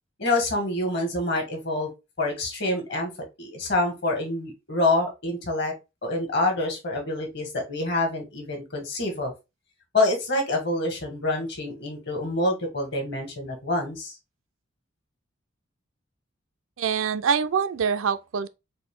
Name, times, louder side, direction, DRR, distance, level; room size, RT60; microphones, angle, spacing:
voice 1, 0.2-1.9 2.2-3.1 3.4-5.7 6.0-9.3 9.9-14.1, left 2 dB, 55° left, 1.5 m, -26 dB
voice 2, 16.8-18.5, right 6 dB, 80° right, 0.4 m, -25 dB
4.1 x 2.6 x 3.6 m
head